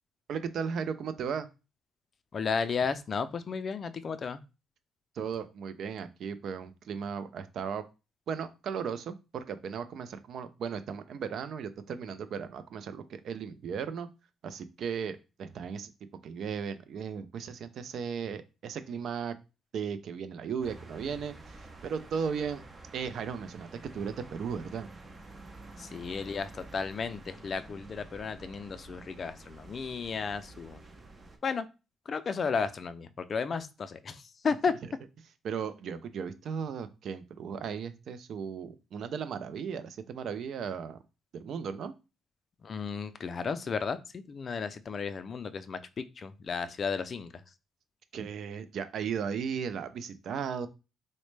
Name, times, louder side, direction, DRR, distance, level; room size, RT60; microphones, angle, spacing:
voice 1, 0.3-1.5 5.2-7.9 8.3-14.1 14.4-15.9 16.2-19.4 19.7-21.6 21.8-22.6 22.9-24.9 35.4-41.0 41.3-41.9 48.1-50.7, right 6 dB, 65° right, 12 dB, 0.4 m, -36 dB
voice 2, 2.3-4.4 25.8-30.8 31.4-31.7 32.1-34.7 42.6-47.4, left 5 dB, 45° left, 12 dB, 0.3 m, -33 dB
sound 1, 20.6-31.4, right 2 dB, 30° right, 0.7 m, -49 dB
4.0 x 2.1 x 3.2 m, 0.29 s
cardioid pair, 90°, 0 cm